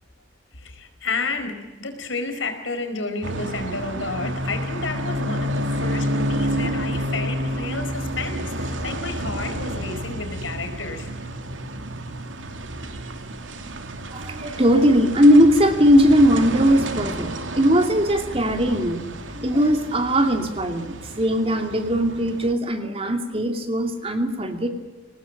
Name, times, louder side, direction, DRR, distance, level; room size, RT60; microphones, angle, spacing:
voice 1, 0.5-11.1, left 3 dB, 85° left, 7 dB, 4.8 m, -31 dB
sound 1, 3.2-22.5, equal, 80° right, 2.6 m, -30 dB
voice 2, 14.1-19.0 19.3-24.7, equal, 30° right, 5 dB, 2.7 m, -19 dB
24.0 x 19.0 x 8.8 m, 1.2 s
head